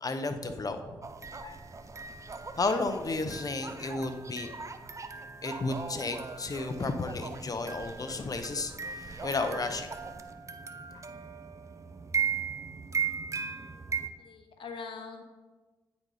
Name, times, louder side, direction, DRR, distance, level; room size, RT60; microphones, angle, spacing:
voice 1, 0.0-1.0 1.4-1.6 2.6-4.5 5.4-9.9 10.9-11.0, left 3 dB, 45° left, 7 dB, 0.8 m, -33 dB
sound 1, 1.0-14.1, right 6 dB, 35° right, 0.6 m, -38 dB
voice 2, 13.9-15.2, left 5 dB, 70° left, 5 dB, 0.9 m, -43 dB
8.9 x 4.1 x 4.9 m, 1.3 s
supercardioid pair, 50°, 9 cm